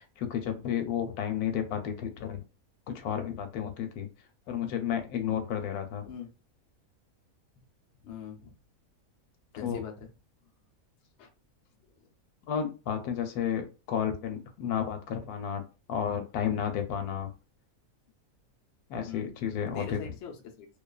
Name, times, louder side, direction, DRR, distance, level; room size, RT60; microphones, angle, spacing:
voice 1, 0.0-2.4 2.9-4.1 4.5-6.1 9.6-9.8 12.5-17.3 18.9-20.0, left 8 dB, 90° left, 6 dB, 1.1 m, -32 dB
voice 2, 8.0-8.5 9.6-10.1 11.2-11.3 11.8-12.1 19.1-20.7, left 7 dB, 60° left, 2 dB, 0.8 m, -43 dB
2.5 x 2.3 x 2.3 m, 0.31 s
omnidirectional pair, 1.5 m